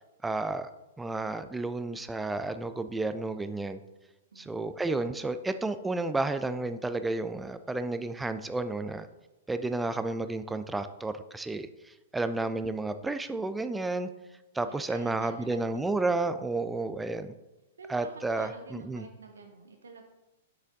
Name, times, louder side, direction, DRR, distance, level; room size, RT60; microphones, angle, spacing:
voice 1, 0.2-0.7 1.0-3.8 4.4-9.1 9.5-14.1 14.5-17.3 17.9-19.0, right 2 dB, 10° right, 10 dB, 0.3 m, -31 dB
voice 2, 4.3-4.7 14.6-16.4 17.8-20.0, right 3 dB, 75° right, 4 dB, 0.6 m, -48 dB
7.2 x 6.2 x 2.6 m, 1.0 s
figure-of-eight pair, 105°, 0 cm